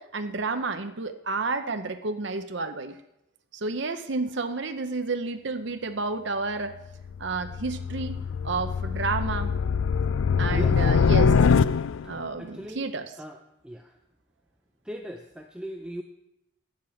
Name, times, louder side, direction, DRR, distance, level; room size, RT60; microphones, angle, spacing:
voice 1, 0.0-2.9 3.5-6.8 7.2-8.1 8.4-9.5 10.4-11.4 12.0-13.1, right 3 dB, 60° right, 7 dB, 0.7 m, -30 dB
sound 1, 7.0-12.2, left 5 dB, 75° left, 0.4 m, -23 dB
voice 2, 12.4-12.9 13.2-13.4 13.6-13.9 14.9-16.0, equal, 5° right, 3 dB, 0.6 m, -38 dB
11.0 x 7.4 x 8.5 m, 0.86 s
head